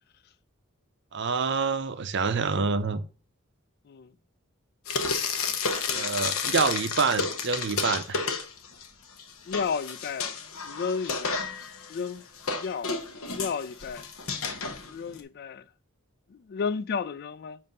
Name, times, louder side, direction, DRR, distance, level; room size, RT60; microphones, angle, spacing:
voice 1, 1.1-3.0 5.9-8.2, right 5 dB, 55° right, 0.6 m, -27 dB
Frying (food), 4.9-8.9 9.2-15.2, left 5 dB, 85° left, 0.8 m, -31 dB
voice 2, 9.5-10.4 10.6-11.5 11.9-12.2 12.6-12.9 13.3-14.1 14.8-15.7 16.3-17.6, left 5 dB, 50° left, 0.3 m, -32 dB
7.5 x 2.6 x 5.2 m
head